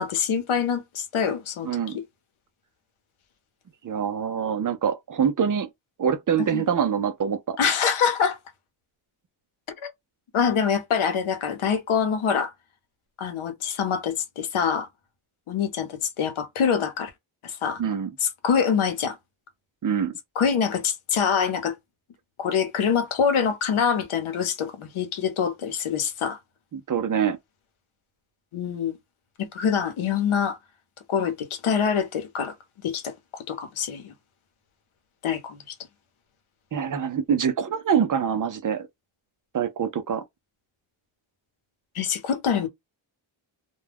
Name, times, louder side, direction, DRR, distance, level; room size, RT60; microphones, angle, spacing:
voice 1, 0.0-2.0 6.5-6.7 7.6-8.4 9.8-9.9 10.3-12.5 13.2-14.9 15.5-17.1 17.4-17.8 18.2-19.2 20.4-21.7 22.4-26.4 28.5-29.0 29.4-30.6 31.1-32.5 32.8-34.1 35.2-35.7 41.9-42.7, left 7 dB, 80° left, 0.9 m, -25 dB
voice 2, 1.6-2.0 3.8-5.7 6.0-7.6 17.8-18.1 19.8-20.1 26.7-27.4 36.7-38.9 39.5-40.2, right 7 dB, 40° right, 0.5 m, -25 dB
2.2 x 2.2 x 3.3 m
wide cardioid pair, 110°, 48 cm